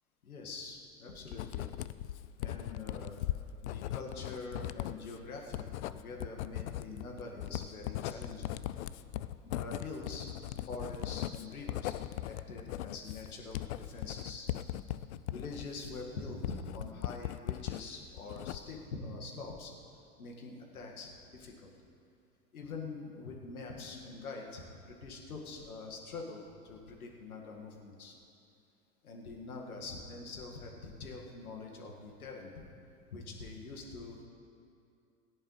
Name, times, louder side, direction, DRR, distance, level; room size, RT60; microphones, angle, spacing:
voice 1, 0.2-1.8 2.4-3.2 3.6-8.6 9.4-10.3 10.7-11.9 12.2-14.5 15.3-19.7 20.2-21.7 22.5-28.2 29.0-32.5 33.1-34.3, left 3 dB, 70° left, 0 dB, 2.0 m, -44 dB
Writing, 1.3-17.8 18.2-18.9, left 13 dB, 50° left, 0.5 m, -39 dB
21.5 x 10.5 x 3.3 m, 2.5 s
figure-of-eight pair, 85°, 44 cm